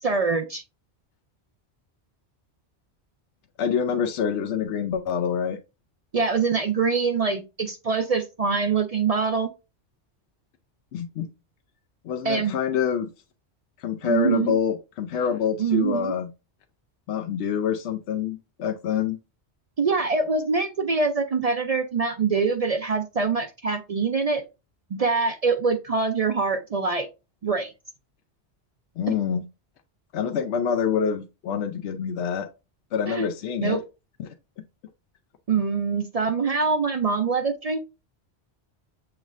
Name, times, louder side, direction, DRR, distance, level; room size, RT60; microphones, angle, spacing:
voice 1, 0.0-0.6 6.1-9.5 12.2-12.5 14.0-14.5 15.6-16.1 19.8-24.4 24.9-27.1 27.4-27.7 33.1-33.3 33.6-33.8 35.5-37.8, right 4 dB, 55° right, 7 dB, 0.4 m, -24 dB
voice 2, 3.6-5.6 10.9-11.3 12.0-13.1 13.8-16.3 17.1-19.2 29.0-29.4 30.1-32.5 32.9-33.8, left 7 dB, 80° left, 6 dB, 0.9 m, -26 dB
7.1 x 3.1 x 2.4 m, 0.27 s
omnidirectional pair, 1.1 m